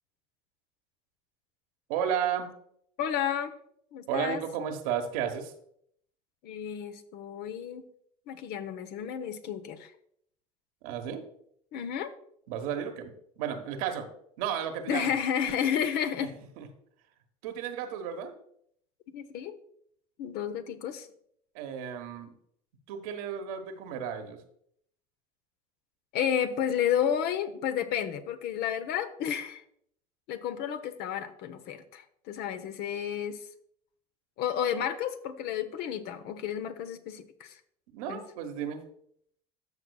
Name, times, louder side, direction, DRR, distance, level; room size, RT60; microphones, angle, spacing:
voice 1, 1.9-2.5 4.1-5.5 10.8-11.2 12.5-14.1 14.4-15.1 16.2-16.3 16.6-16.7 17.4-18.3 21.5-22.3 22.9-24.4 37.9-38.8, right 8 dB, 70° right, 5 dB, 1.2 m, -33 dB
voice 2, 3.0-3.5 3.9-4.4 6.4-7.8 8.3-9.9 11.7-12.1 14.9-16.3 19.1-19.5 20.2-21.1 26.1-29.6 30.3-33.4 34.4-37.6 38.1-38.2, left 9 dB, 60° left, 10 dB, 0.9 m, -31 dB
13.5 x 6.0 x 2.3 m, 0.68 s
hypercardioid pair, 70°, 19 cm